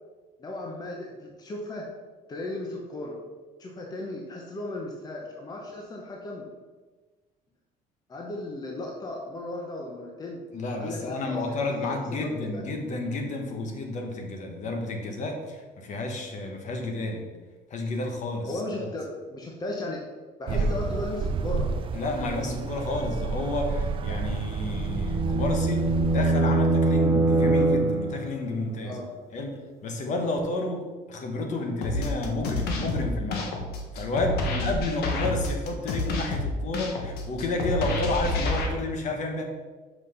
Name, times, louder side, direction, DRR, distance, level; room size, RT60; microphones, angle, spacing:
voice 1, 0.4-1.9 2.3-3.2 3.6-6.4 8.1-10.4 10.8-11.7 12.1-12.6 18.5-20.0 20.4-21.7 22.1-22.7 28.8-29.1 34.4-34.7, left 2 dB, 25° left, -1 dB, 1.0 m, -36 dB
voice 2, 10.5-17.2 17.7-18.9 20.5-20.7 21.9-29.0 29.3-33.5 33.9-39.4, left 2 dB, 45° left, 3 dB, 1.3 m, -31 dB
sound 1, 20.5-26.3, right 4 dB, 30° right, 0.4 m, -30 dB
sound 2, 24.5-28.4, right 2 dB, 15° right, 0.8 m, -23 dB
sound 3, 31.8-38.7, left 2 dB, 70° left, 1.4 m, -29 dB
5.9 x 5.8 x 5.6 m, 1.3 s
cardioid pair, 160°, 17 cm